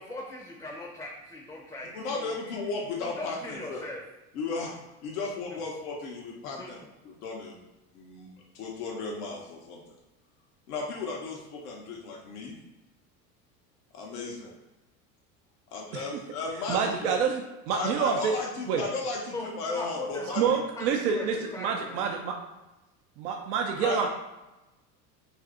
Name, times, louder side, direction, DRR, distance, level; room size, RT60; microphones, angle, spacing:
voice 1, 0.0-2.3 3.0-4.0 5.5-5.6 6.6-6.7 19.3-22.1, left 1 dB, 10° left, -2 dB, 0.5 m, -40 dB
voice 2, 1.9-3.8 4.3-4.7 5.0-6.8 7.0-7.5 7.9-8.3 8.5-9.8 10.7-12.6 13.9-14.5 15.7-17.1 17.7-20.4 23.8-24.1, left 3 dB, 85° left, -2 dB, 0.7 m, -35 dB
voice 3, 16.7-18.3 18.7-18.8 20.4-22.4 23.2-24.1, right 6 dB, 80° right, 2 dB, 0.5 m, -27 dB
2.6 x 2.5 x 3.6 m, 1.0 s
hypercardioid pair, 85°, 44 cm